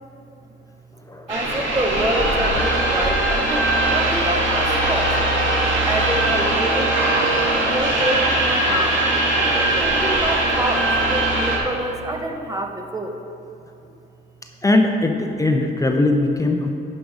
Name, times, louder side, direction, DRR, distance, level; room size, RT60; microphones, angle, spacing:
voice 1, 1.3-5.1 5.9-7.0 7.6-9.0 9.5-13.2, right 1 dB, 15° right, 4 dB, 0.8 m, -27 dB
sound 1, 1.3-11.6, right 2 dB, 75° right, 2.1 m, -20 dB
voice 2, 14.6-16.7, left 2 dB, 15° left, 3 dB, 0.6 m, -19 dB
11.0 x 5.3 x 5.0 m, 2.7 s
cardioid pair, 90°, 20 cm